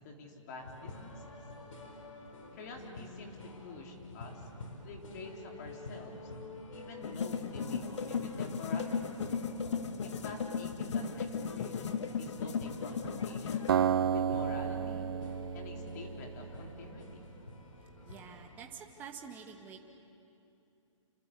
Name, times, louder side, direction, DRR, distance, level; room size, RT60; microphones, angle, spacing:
voice 1, 0.0-1.4 2.5-4.5 4.8-6.2 6.7-9.1 10.0-13.7 14.1-15.1 15.5-17.2, left 3 dB, 30° left, 1 dB, 3.7 m, -47 dB
sound 1, 0.6-18.6, left 2 dB, 80° left, 5.0 m, -49 dB
sound 2, 7.0-13.8, left 6 dB, 60° left, 1.7 m, -36 dB
Acoustic guitar, 13.7-16.9, right 8 dB, 45° right, 0.7 m, -32 dB
voice 2, 18.0-19.8, right 7 dB, 10° right, 1 dB, 1.6 m, -48 dB
28.5 x 25.0 x 8.3 m, 2.7 s
hypercardioid pair, 165°, 17 cm